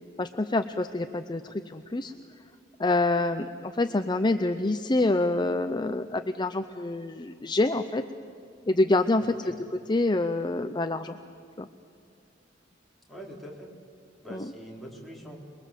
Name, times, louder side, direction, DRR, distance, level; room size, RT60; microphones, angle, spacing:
voice 1, 0.2-2.1 2.8-8.0 8.7-9.5 9.9-11.2 11.6-11.7 14.3-14.5, left 2 dB, 25° left, 9 dB, 0.6 m, -26 dB
voice 2, 13.1-13.7 14.2-15.4, equal, ahead, -3 dB, 4.1 m, -43 dB
27.5 x 22.0 x 7.5 m, 2.5 s
head